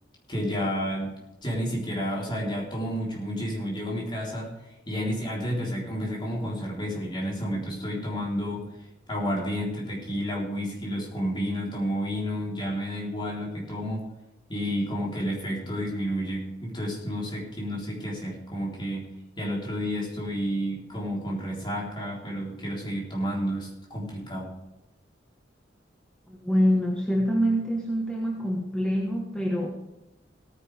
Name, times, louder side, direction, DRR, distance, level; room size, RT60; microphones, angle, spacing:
voice 1, 0.3-4.5 4.9-8.7 9.1-14.0 14.5-19.1 19.4-24.5, equal, 25° left, -4 dB, 3.9 m, -31 dB
voice 2, 26.3-29.7, equal, 5° left, -2 dB, 1.4 m, -25 dB
17.5 x 9.8 x 3.5 m, 0.92 s
head